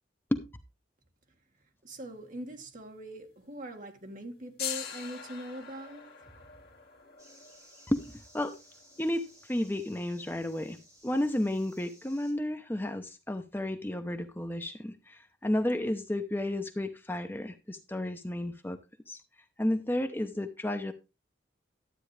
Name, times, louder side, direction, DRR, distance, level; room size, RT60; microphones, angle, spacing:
voice 1, 1.8-6.1, right 1 dB, 45° right, 1.9 m, -42 dB
sound 1, 2.0-2.8 3.1-3.2 4.0-10.7, left 9 dB, 55° left, 2.2 m, -44 dB
sound 2, 7.2-12.3, equal, 20° right, 7.5 m, -58 dB
voice 2, 9.0-10.8 11.0-18.8 19.1-19.2 19.6-20.9, left 1 dB, 10° left, 0.6 m, -32 dB
12.0 x 8.8 x 3.3 m
head